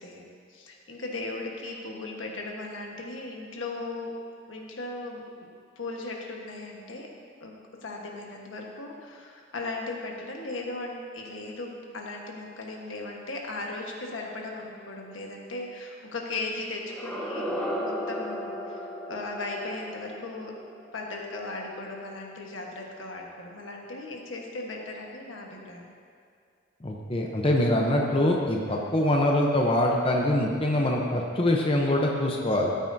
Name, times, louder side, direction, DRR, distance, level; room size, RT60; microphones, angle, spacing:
voice 1, 0.0-4.1 4.5-5.2 5.8-7.1 7.4-7.5 7.8-17.5 17.7-20.5 20.9-25.9 28.7-29.0, left 2 dB, 85° left, 0 dB, 1.3 m, -37 dB
sound 1, 16.8-21.8, equal, 5° left, 1.0 m, -35 dB
voice 2, 26.8-32.7, left 1 dB, 30° left, 0 dB, 0.7 m, -24 dB
13.0 x 9.0 x 2.7 m, 2.2 s
head